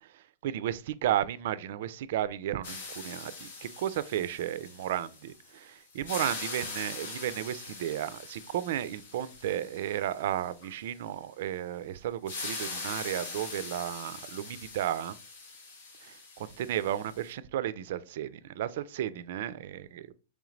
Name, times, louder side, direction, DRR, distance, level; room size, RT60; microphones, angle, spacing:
voice 1, 0.0-15.2 16.0-20.1, right 11 dB, 65° right, 0.3 m, -33 dB
sound 1, 2.6-5.6 5.9-10.7 12.3-17.3, left 3 dB, 85° left, 1.3 m, -42 dB
3.8 x 3.2 x 3.1 m
hypercardioid pair, 135°, 0 cm